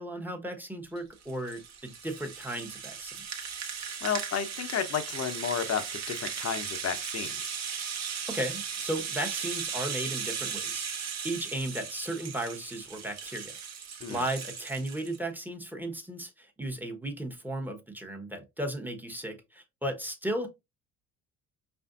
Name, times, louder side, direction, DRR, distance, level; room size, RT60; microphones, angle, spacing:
voice 1, 0.0-3.2 8.3-10.9 11.2-13.6 14.1-20.5, right 1 dB, 5° right, 1.0 m, -35 dB
Rattle (instrument), 1.0-15.2, right 7 dB, 45° right, 0.9 m, -37 dB
voice 2, 4.0-7.6 14.0-14.2, left 7 dB, 40° left, 0.8 m, -32 dB
4.9 x 2.6 x 2.4 m
hypercardioid pair, 65°, 38 cm